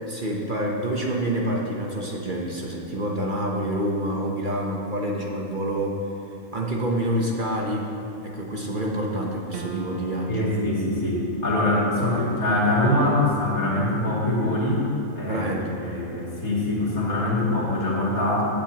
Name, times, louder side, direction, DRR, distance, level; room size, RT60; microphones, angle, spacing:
voice 1, 0.1-6.0 6.5-7.9 8.2-10.5 15.3-15.7, right 1 dB, 40° right, -1 dB, 1.0 m, -27 dB
sound 1, 9.5-10.6, right 6 dB, 65° right, 0.9 m, -38 dB
voice 2, 10.3-14.9 15.1-18.4, left 1 dB, 80° left, -7 dB, 3.1 m, -23 dB
16.5 x 8.8 x 2.9 m, 2.7 s
omnidirectional pair, 1.5 m